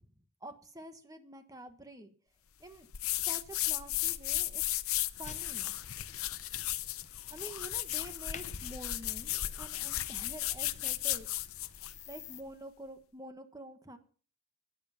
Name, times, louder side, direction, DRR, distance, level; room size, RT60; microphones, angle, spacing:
voice 1, 0.4-2.1 2.6-2.9 3.2-4.8 5.2-5.7 7.3-11.3 12.1-14.0, right 1 dB, 15° right, 7 dB, 1.4 m, -48 dB
sound 1, 2.9-12.0, left 14 dB, 70° left, 0.7 m, -35 dB
sound 2, 5.2-12.4, left 7 dB, 30° left, 0.7 m, -54 dB
13.5 x 9.8 x 5.9 m, 0.42 s
head